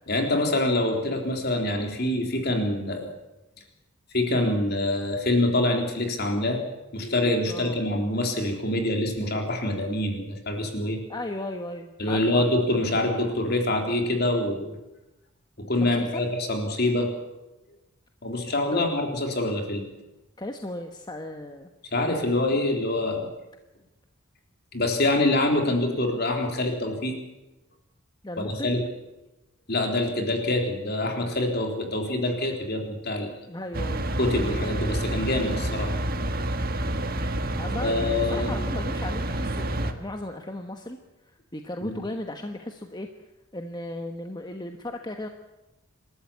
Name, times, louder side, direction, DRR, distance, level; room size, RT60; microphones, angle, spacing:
voice 1, 0.1-3.1 4.1-6.6 6.9-11.0 12.0-14.8 15.6-17.1 18.2-19.9 21.9-23.3 24.7-27.2 28.4-28.8 29.7-33.3 34.2-35.9 37.8-38.6 41.8-42.0, left 1 dB, 50° left, 3 dB, 3.8 m, -25 dB
voice 2, 7.5-7.8 11.1-12.4 15.8-16.3 18.7-18.8 20.4-21.7 28.2-28.8 33.5-34.1 37.6-41.0 41.3-43.1 43.5-45.3, left 1 dB, 20° left, 5 dB, 1.2 m, -36 dB
sound 1, 33.7-39.9, right 1 dB, 45° right, 1.6 m, -28 dB
27.5 x 13.0 x 8.7 m, 1.0 s
head